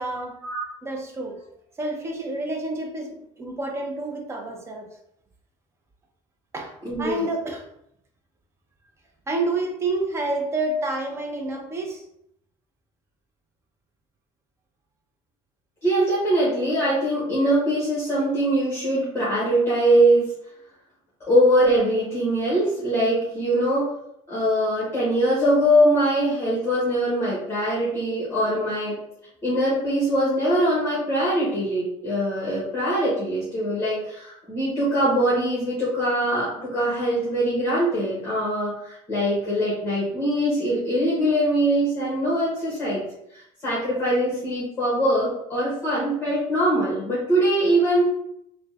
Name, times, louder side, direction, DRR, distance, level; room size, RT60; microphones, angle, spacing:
voice 1, 0.0-0.4 0.8-1.4 1.8-4.9 6.5-6.7 7.0-7.6 9.3-12.0, right 2 dB, 20° right, 2 dB, 0.5 m, -28 dB
voice 2, 6.8-7.3 15.8-20.3 21.3-23.9 24.3-28.9 29.4-43.1 43.3-48.0, right 1 dB, 15° left, -8 dB, 1.1 m, -22 dB
3.4 x 2.1 x 2.6 m, 0.75 s
cardioid pair, 150°, 14 cm